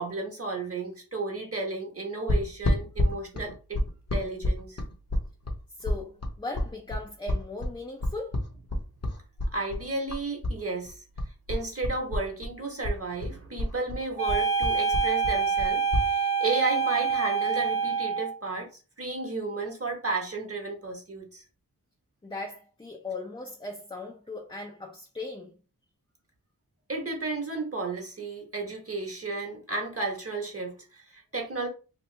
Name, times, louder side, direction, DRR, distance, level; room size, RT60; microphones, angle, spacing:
voice 1, 0.0-3.8 4.1-4.8 9.5-11.0 11.5-18.7 19.0-21.4 26.9-31.7, right 3 dB, 40° right, 1.2 m, -33 dB
sound 1, 2.3-10.6 10.8-12.5 12.8-16.1, left 1 dB, 45° left, 1.0 m, -29 dB
voice 2, 5.8-8.4 22.2-25.6, left 2 dB, 15° left, 0.5 m, -38 dB
sound 2, 14.2-18.4, right 6 dB, 65° right, 0.9 m, -26 dB
3.0 x 2.5 x 3.2 m
wide cardioid pair, 60°, 36 cm